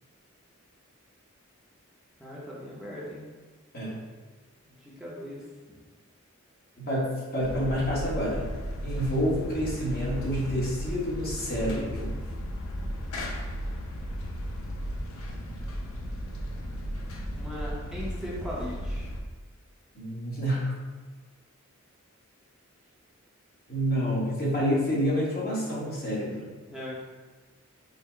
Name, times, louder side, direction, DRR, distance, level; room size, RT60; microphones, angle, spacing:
voice 1, 2.2-3.3 4.6-5.4 5.7-5.8 17.3-19.1 26.7-27.0, equal, ahead, -7 dB, 0.8 m, -38 dB
voice 2, 6.8-8.5 8.8-12.2 19.9-20.7 23.7-26.5, equal, 45° left, -6 dB, 1.3 m, -28 dB
sound 1, 7.4-19.2, equal, 80° left, 0.7 m, -35 dB
5.5 x 2.2 x 4.4 m, 1.3 s
head